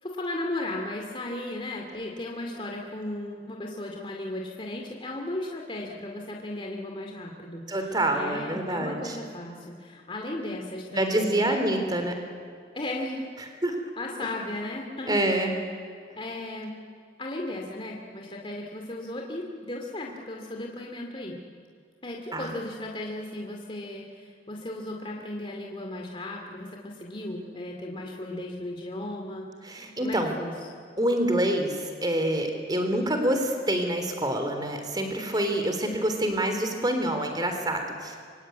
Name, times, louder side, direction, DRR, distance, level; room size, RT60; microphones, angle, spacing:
voice 1, 0.0-11.6 12.7-13.3 14.0-15.2 16.2-16.7 17.2-21.4 22.0-30.5, left 1 dB, 25° left, 0 dB, 2.4 m, -36 dB
voice 2, 7.7-9.2 10.9-12.2 13.6-13.8 15.1-15.5 22.3-22.5 29.6-30.3 31.0-38.2, right 1 dB, 20° right, 5 dB, 3.4 m, -26 dB
25.0 x 25.0 x 9.4 m, 2.2 s
head